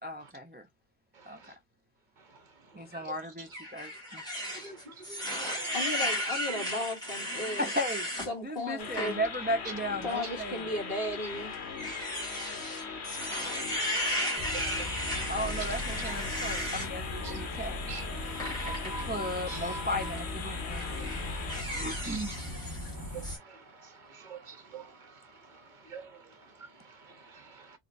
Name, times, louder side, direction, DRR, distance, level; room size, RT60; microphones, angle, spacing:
voice 1, 0.0-0.7 1.3-1.4 2.7-4.2 7.6-8.1 8.4-10.7 15.3-17.8 18.6-18.7 19.0-20.8 21.6-22.3, equal, 15° right, 0.4 m, -35 dB
voice 2, 1.1-1.5 2.2-2.4 2.9-3.2 4.5-5.8 6.5-6.6 9.6-9.7 12.2-13.8 14.6-15.3 16.0-16.2 17.2-17.6 17.9-20.1 20.8-22.4 22.9-27.8, right 4 dB, 50° right, 0.8 m, -46 dB
sound 1, 3.5-8.3 8.8-9.1 9.6-9.7 10.8-16.9 18.4-19.0 20.0-20.2 20.7-22.9 23.2-23.4, equal, 5° left, 2.0 m, -35 dB
voice 3, 5.7-7.7 8.3-9.2 10.0-11.5, left 1 dB, 65° left, 1.7 m, -35 dB
sound 2, 8.8-21.6, left 5 dB, 90° left, 1.2 m, -40 dB
sound 3, 14.4-23.4, left 1 dB, 20° left, 1.6 m, -39 dB
4.2 x 3.2 x 2.5 m
omnidirectional pair, 1.1 m